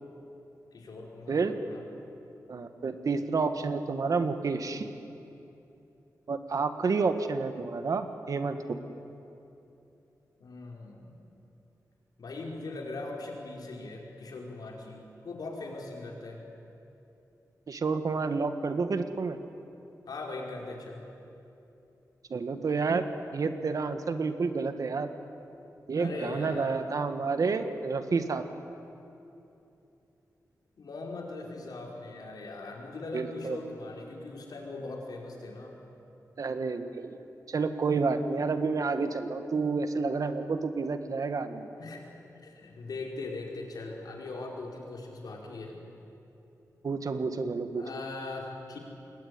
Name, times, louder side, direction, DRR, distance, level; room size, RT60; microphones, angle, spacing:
voice 1, 0.7-1.8 10.4-11.3 12.2-16.4 20.1-21.0 25.9-26.9 30.8-35.8 41.8-42.1 42.4-45.8 47.8-48.8, left 2 dB, 80° left, 0 dB, 5.0 m, -40 dB
voice 2, 2.5-4.9 6.3-8.8 17.7-19.4 22.3-23.1 23.3-25.1 25.9-28.4 33.1-33.6 36.4-37.2 37.5-41.7 46.8-47.8, right 4 dB, 60° right, 8 dB, 1.7 m, -29 dB
28.0 x 21.5 x 9.8 m, 2.9 s
wide cardioid pair, 125°, 7 cm